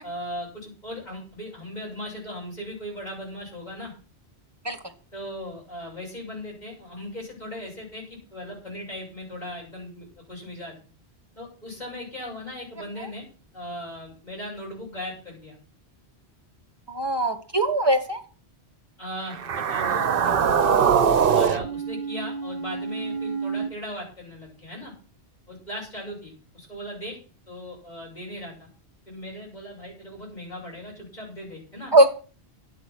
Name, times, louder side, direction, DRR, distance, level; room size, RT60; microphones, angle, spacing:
voice 1, 0.0-3.9 5.1-10.8 11.4-13.3 13.5-15.6 19.0-20.9 21.3-24.9 25.5-27.2 27.5-28.7 29.1-31.9, equal, 40° left, -3 dB, 7.4 m, -38 dB
voice 2, 16.9-18.2 31.9-32.2, right 1 dB, 25° right, 7 dB, 1.5 m, -20 dB
sound 1, 19.3-23.7, right 7 dB, 60° right, 1.0 m, -23 dB
12.0 x 9.1 x 6.1 m, 0.38 s
omnidirectional pair, 1.1 m